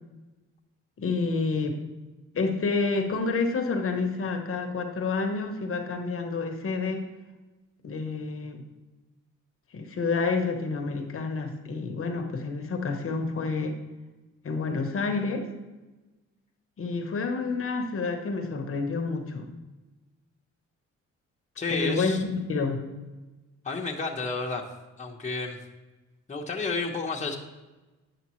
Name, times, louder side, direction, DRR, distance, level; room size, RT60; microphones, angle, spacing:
voice 1, 1.0-1.8 2.3-7.1 7.8-8.7 9.7-13.8 14.4-15.5 16.8-19.5 21.7-22.8, left 4 dB, 45° left, 4 dB, 1.0 m, -29 dB
voice 2, 21.6-22.2 23.6-24.6 25.0-25.6 26.3-27.4, left 3 dB, 25° left, 0 dB, 1.0 m, -31 dB
9.8 x 6.5 x 3.1 m, 1.2 s
cardioid pair, 90°, 30 cm